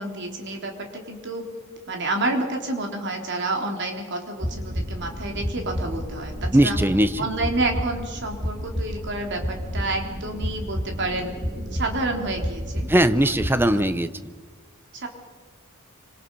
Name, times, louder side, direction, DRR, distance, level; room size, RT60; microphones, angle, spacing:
voice 1, 0.0-1.5 1.9-6.8 7.2-11.3 11.7-12.9 13.2-13.3 13.6-13.9 14.9-15.1, right 2 dB, 55° right, 2 dB, 3.5 m, -29 dB
sound 1, 4.4-13.5, equal, 35° right, 2.4 m, -31 dB
voice 2, 6.5-7.3 12.9-14.3, right 1 dB, 10° right, 12 dB, 0.8 m, -20 dB
26.5 x 26.0 x 5.5 m, 1.4 s
head